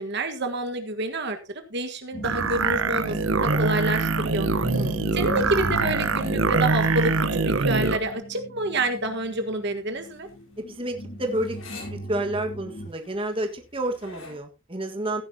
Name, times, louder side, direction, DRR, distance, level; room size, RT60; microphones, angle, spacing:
voice 1, 0.0-1.4 1.7-4.5 5.1-7.1 7.4-10.3, right 2 dB, 55° right, 6 dB, 1.5 m, -28 dB
sound 1, 2.1-12.9, left 1 dB, 45° left, 1.6 m, -37 dB
sound 2, 2.2-8.0, right 4 dB, 70° right, 1.0 m, -24 dB
voice 2, 4.7-5.1 10.6-11.6 11.9-15.2, right 1 dB, 25° right, 4 dB, 1.6 m, -30 dB
sound 3, 9.0-14.4, left 4 dB, 75° left, 5.4 m, -47 dB
16.0 x 10.5 x 2.8 m, 0.27 s
head